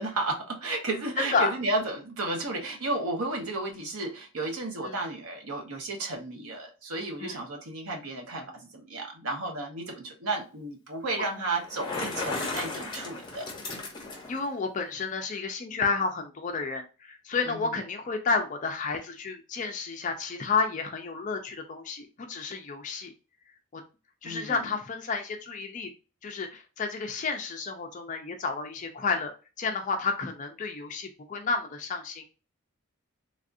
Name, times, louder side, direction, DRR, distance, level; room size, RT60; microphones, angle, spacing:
voice 1, 0.0-13.5 17.4-17.8 24.2-24.7, right 2 dB, 85° right, 0.9 m, -33 dB
voice 2, 1.2-1.5 7.2-7.4 14.3-23.1 23.7-23.8 24.2-25.9 26.2-29.3 29.6-32.2, left 4 dB, 35° left, 0.4 m, -31 dB
Bicycle, 11.5-14.4, left 3 dB, 20° left, 0.8 m, -35 dB
3.4 x 2.4 x 2.5 m
head